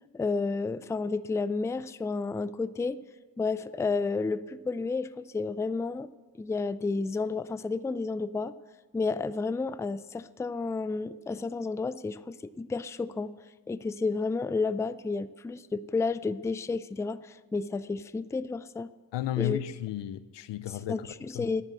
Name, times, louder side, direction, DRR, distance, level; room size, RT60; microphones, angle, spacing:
voice 1, 0.1-3.0 3.4-6.1 6.4-8.5 8.9-13.4 13.7-18.9 19.4-19.6 20.7-21.6, left 4 dB, 5° left, 0.4 m, -31 dB
voice 2, 19.1-21.0 21.3-21.5, left 13 dB, 80° left, 0.7 m, -33 dB
10.5 x 9.9 x 7.8 m
supercardioid pair, 55°, 42 cm